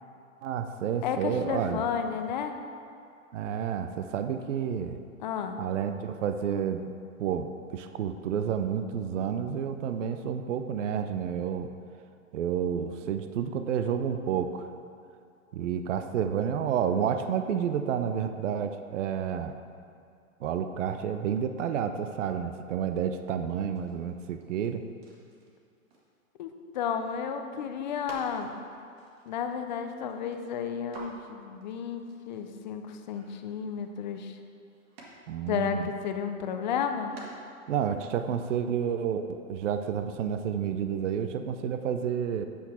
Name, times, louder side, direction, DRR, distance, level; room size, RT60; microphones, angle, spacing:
voice 1, 0.4-1.8 3.3-5.0 5.6-6.9 7.2-11.7 12.3-14.6 15.5-19.5 20.4-24.8 35.3-35.9 37.7-42.4, right 8 dB, 60° right, 8 dB, 0.6 m, -30 dB
voice 2, 1.0-2.6 5.2-5.6 26.4-28.5 29.3-34.4 35.5-37.1, left 7 dB, 35° left, 6 dB, 0.5 m, -32 dB
sound 1, 23.7-27.4 27.8-35.3 35.6-36.2 36.6-37.8 38.0-38.1 38.3-38.9 40.2-40.3, right 2 dB, 45° right, 1.8 m, -52 dB
8.6 x 5.9 x 4.2 m, 2.4 s
hypercardioid pair, 145°, 42 cm